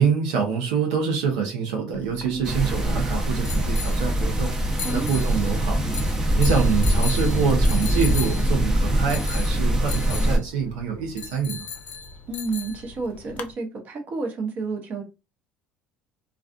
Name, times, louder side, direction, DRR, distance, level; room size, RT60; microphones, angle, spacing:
voice 1, 0.0-4.5 4.9-5.8 6.4-11.6, right 6 dB, 85° right, 0.6 m, -25 dB
sound 1, 1.9-13.5, left 6 dB, 55° left, 0.5 m, -37 dB
sound 2, 2.4-10.4, right 1 dB, 20° right, 0.7 m, -23 dB
voice 2, 12.3-15.0, right 3 dB, 50° right, 0.9 m, -30 dB
2.3 x 2.3 x 2.4 m
supercardioid pair, 85°, 3 cm